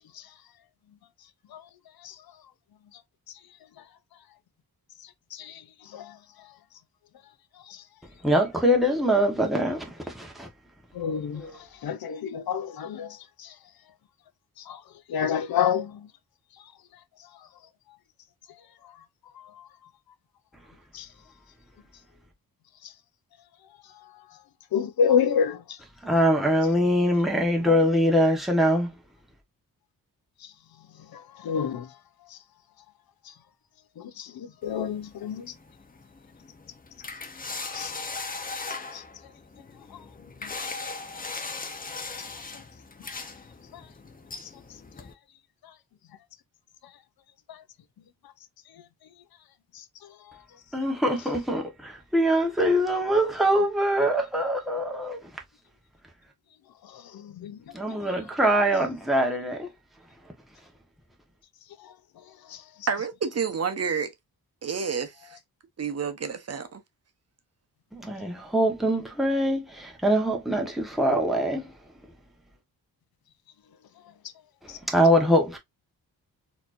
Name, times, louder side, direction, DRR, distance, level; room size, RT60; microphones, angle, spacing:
voice 1, 5.3-6.2 7.7-7.8 10.9-11.4 11.8-13.5 14.6-14.8 15.1-16.1 19.6-19.7 20.9-21.1 22.8-22.9 24.7-25.8 27.7-27.8 31.1-31.9 32.3-32.4 33.3-33.4 34.0-35.5 37.7-37.9 38.9-39.0 39.9-40.0 40.4-40.5 43.7-43.8 47.5-47.6 49.7-49.8 56.8-57.7 61.8-61.9 62.5-62.6 74.7-74.8, left 7 dB, 70° left, 0.7 m, -29 dB
voice 2, 8.2-10.5 11.3-11.5 26.0-28.9 50.7-55.3 57.7-59.7 67.9-71.7 74.6-75.6, equal, ahead, 1.1 m, -23 dB
sound 1, 34.6-45.1, left 3 dB, 25° left, 0.7 m, -39 dB
voice 3, 62.9-64.1 64.6-65.4 65.8-66.8, right 6 dB, 40° right, 0.9 m, -29 dB
4.2 x 2.9 x 2.5 m
cardioid pair, 90°, 38 cm